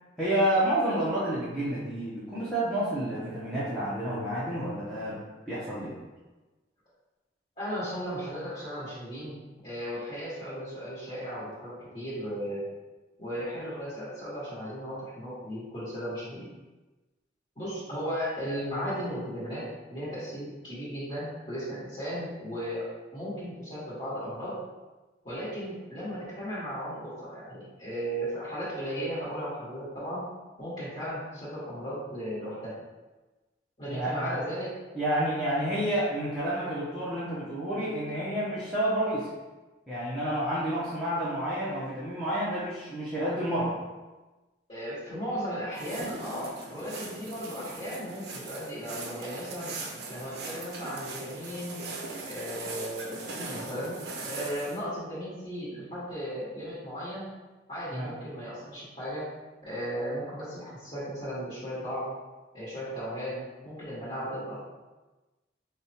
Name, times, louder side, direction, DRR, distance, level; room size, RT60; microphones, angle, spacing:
voice 1, 0.2-5.2 5.5-5.9 33.9-34.4 34.9-39.3 39.9-43.7 57.9-58.1, right 1 dB, ahead, -12 dB, 0.6 m, -29 dB
voice 2, 7.6-9.3 9.6-12.6 13.2-16.5 17.6-22.9 23.1-24.6 25.2-30.2 30.6-32.7 33.8-34.7 44.7-49.7 50.1-51.8 52.2-57.3 57.7-59.2 59.6-62.1 62.5-64.6, equal, 30° left, -12 dB, 1.3 m, -36 dB
sound 1, 45.7-54.8, right 3 dB, 60° right, 0.5 m, -40 dB
5.1 x 2.1 x 2.8 m, 1.2 s
head